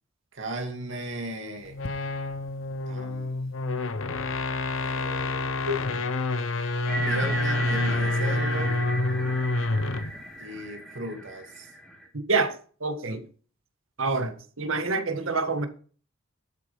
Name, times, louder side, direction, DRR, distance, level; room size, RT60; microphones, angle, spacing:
voice 1, 0.3-1.8 2.9-3.4 4.8-5.6 7.0-8.8 10.4-11.7 14.2-14.3, right 1 dB, 65° right, 2.4 m, -36 dB
sound 1, 1.7-10.2, left 2 dB, 85° left, 1.2 m, -28 dB
sound 2, 6.9-12.1, right 1 dB, ahead, 2.5 m, -34 dB
voice 2, 12.1-12.5 12.8-13.2 14.0-15.7, right 3 dB, 90° right, 1.7 m, -27 dB
11.5 x 7.9 x 5.5 m
head